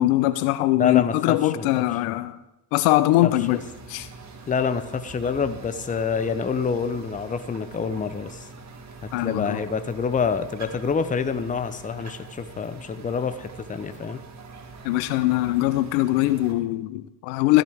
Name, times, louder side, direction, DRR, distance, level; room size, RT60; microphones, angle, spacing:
voice 1, 0.0-2.4 2.7-3.6 3.9-4.1 9.1-9.6 14.8-17.6, left 16 dB, 65° left, 0.8 m, -22 dB
voice 2, 0.8-1.8 3.2-3.6 4.5-8.5 9.2-14.2, left 6 dB, 15° left, 0.8 m, -27 dB
sound 1, 3.4-16.5, right 3 dB, 35° right, 1.8 m, -43 dB
15.0 x 10.5 x 3.6 m
hypercardioid pair, 75°, 47 cm